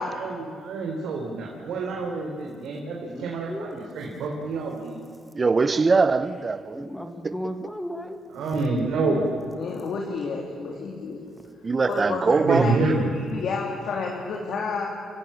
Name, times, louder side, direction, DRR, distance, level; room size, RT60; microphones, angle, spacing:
voice 1, 0.0-5.0 8.3-9.2 12.2-13.1, right 3 dB, 75° right, 3.8 m, -27 dB
voice 2, 3.1-3.8 5.7-5.8 6.7-8.2, equal, 5° left, 2.0 m, -35 dB
voice 3, 5.3-6.9 7.2-7.3 11.6-12.9, right 4 dB, 30° right, 0.9 m, -22 dB
voice 4, 9.6-11.2 11.9-12.7 13.1-14.8, left 4 dB, 65° left, 3.0 m, -30 dB
29.5 x 16.0 x 8.7 m
cardioid pair, 90°, 0 cm